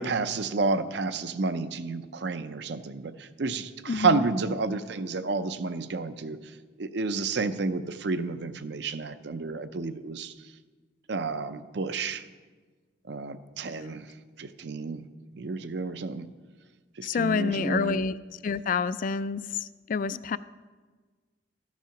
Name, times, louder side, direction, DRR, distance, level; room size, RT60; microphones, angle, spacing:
voice 1, 0.0-6.4 6.8-10.3 11.1-12.2 13.1-14.1 14.4-15.1 15.3-16.3 17.0-18.1, right 4 dB, 60° right, 12 dB, 0.6 m, -30 dB
voice 2, 3.9-4.2 17.0-18.1 18.4-20.4, left 5 dB, 45° left, 16 dB, 0.3 m, -28 dB
13.5 x 7.3 x 5.9 m, 1.4 s
head